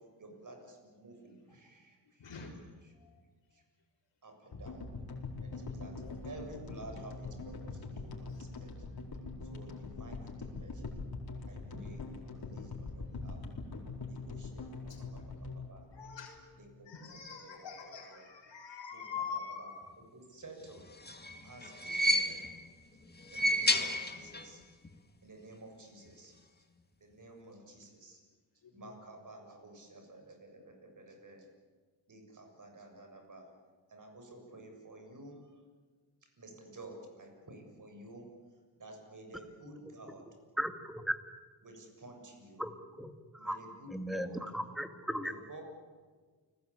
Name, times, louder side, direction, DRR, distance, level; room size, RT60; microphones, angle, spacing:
voice 1, 0.2-2.3 2.8-2.9 3.5-3.6 4.2-4.8 5.4-5.9 6.2-8.7 9.5-11.0 11.5-13.4 14.1-14.6 15.0-15.9 16.6-17.8 18.1-18.2 18.9-19.7 20.1-20.8 21.4-22.5 23.3-24.6 25.2-26.3 27.0-28.2 28.7-31.5 32.1-33.5 33.9-35.4 36.4-38.3 38.8-40.2 41.6-42.7 43.4-44.4 45.2-45.6, right 2 dB, 45° right, 3 dB, 7.2 m, -52 dB
voice 2, 2.2-2.7 3.0-3.1 5.9-6.3 8.3-8.4 14.9-15.0 15.5-15.6 15.9-16.4 16.8-19.9 28.6-28.9, left 6 dB, 70° left, -2 dB, 4.6 m, -44 dB
sound 1, 4.5-16.8, left 3 dB, 55° left, 4.6 m, -43 dB
sound 2, 20.8-22.7 23.2-24.6 24.8-24.9 26.1-26.2, left 1 dB, 20° left, 2.3 m, -31 dB
voice 3, 40.6-41.2 42.6-42.7 43.0-43.1 43.4-43.6 43.9-45.3, equal, ahead, 7 dB, 2.3 m, -36 dB
29.5 x 20.5 x 8.5 m, 1.5 s
wide cardioid pair, 105°, 44 cm